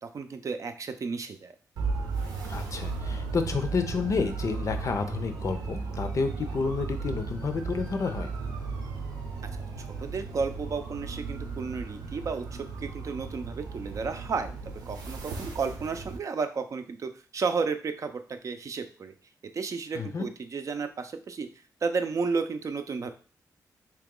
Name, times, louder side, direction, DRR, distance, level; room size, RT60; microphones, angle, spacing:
voice 1, 0.0-1.5 9.8-14.5 14.9-19.1 19.5-21.5 21.8-23.1, right 5 dB, 50° right, 8 dB, 0.5 m, -32 dB
sound 1, 1.8-16.2, right 4 dB, 90° right, 0.8 m, -35 dB
voice 2, 2.5-8.3 19.9-20.3, left 4 dB, 50° left, 7 dB, 0.5 m, -30 dB
3.0 x 2.9 x 3.7 m, 0.39 s
cardioid pair, 80°, 7 cm